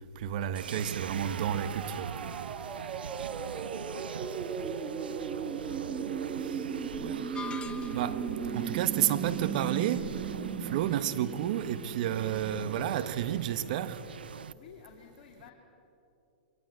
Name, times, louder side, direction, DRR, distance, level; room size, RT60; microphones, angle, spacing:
voice 1, 0.2-2.3 7.0-7.2 7.9-8.2 8.5-10.2 10.6-14.0, right 11 dB, 60° right, 1.2 m, -31 dB
sound 1, 0.6-14.5, right 7 dB, 85° right, 0.4 m, -42 dB
sound 2, 1.1-12.8, right 7 dB, 25° right, 1.6 m, -37 dB
voice 2, 4.9-5.8 14.5-15.5, left 8 dB, 55° left, 2.5 m, -55 dB
sound 3, 7.3-8.3, left 6 dB, 20° left, 0.5 m, -42 dB
23.5 x 18.0 x 7.7 m
hypercardioid pair, 115°, 5 cm